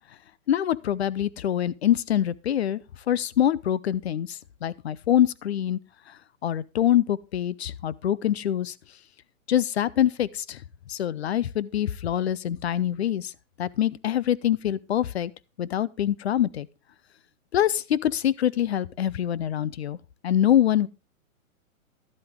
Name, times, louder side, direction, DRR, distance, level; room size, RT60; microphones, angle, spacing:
voice 1, 0.5-5.8 6.4-8.7 9.5-10.6 10.9-13.3 13.6-15.3 15.6-16.7 17.5-20.0 20.2-20.9, left 11 dB, 50° left, 0.4 m, -25 dB
12.0 x 7.7 x 3.6 m
hypercardioid pair, 160°, 43 cm